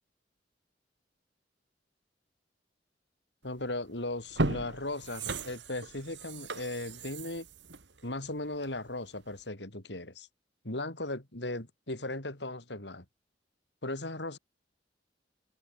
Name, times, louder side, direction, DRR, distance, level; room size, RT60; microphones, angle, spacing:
voice 1, 3.4-7.5 8.0-10.3 10.6-13.0 13.8-14.4, left 2 dB, 70° left, 4.3 m, -37 dB
sound 1, 3.6-3.7 4.2-8.9 9.3-9.4, right 2 dB, 75° right, 2.3 m, -36 dB
head